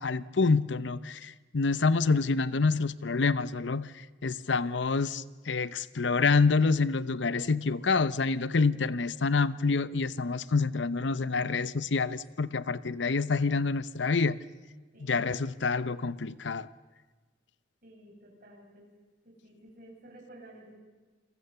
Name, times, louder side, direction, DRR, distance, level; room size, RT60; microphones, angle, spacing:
voice 1, 0.0-14.4 15.0-16.7, left 4 dB, 85° left, 17 dB, 0.8 m, -27 dB
voice 2, 14.9-15.2 17.8-18.9 19.2-20.8, right 1 dB, 50° right, -1 dB, 7.7 m, -52 dB
29.0 x 22.5 x 6.9 m, 1.3 s
head